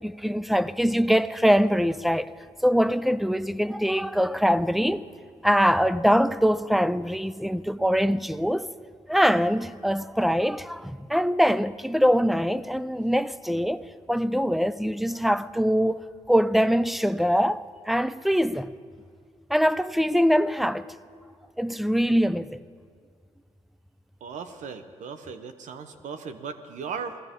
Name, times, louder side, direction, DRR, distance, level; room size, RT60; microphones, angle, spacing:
voice 1, 0.0-2.3 2.6-5.0 5.4-8.7 9.1-16.0 16.3-18.7 19.5-20.9 21.6-22.6, equal, ahead, 0.4 m, -23 dB
voice 2, 24.2-27.2, right 6 dB, 70° right, 0.9 m, -37 dB
20.5 x 15.5 x 3.7 m
cardioid pair, 85°, 13 cm